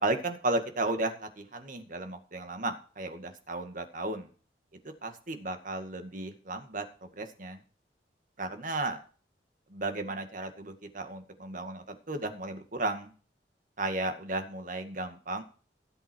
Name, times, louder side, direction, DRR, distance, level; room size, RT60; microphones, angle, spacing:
voice 1, 0.0-4.3 5.0-7.6 8.4-9.0 9.7-13.1 13.8-15.4, right 2 dB, 50° right, 6 dB, 2.1 m, -34 dB
18.0 x 7.9 x 4.6 m, 0.38 s
head